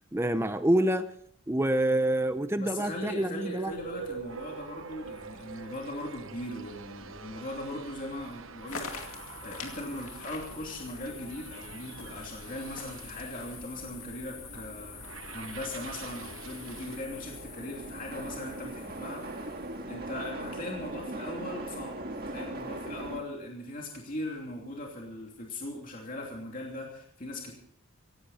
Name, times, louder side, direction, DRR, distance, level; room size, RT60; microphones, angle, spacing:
voice 1, 0.1-1.1 1.5-3.7, right 1 dB, 10° right, 10 dB, 0.6 m, -27 dB
voice 2, 2.5-27.5, left 1 dB, 40° left, -1 dB, 2.9 m, -39 dB
sound 1, 2.8-17.0, right 5 dB, 70° right, 1.1 m, -46 dB
sound 2, 3.7-23.2, right 1 dB, 45° right, 1.7 m, -44 dB
sound 3, 8.7-19.8, left 6 dB, 80° left, 2.4 m, -46 dB
17.5 x 16.5 x 4.2 m, 0.66 s
head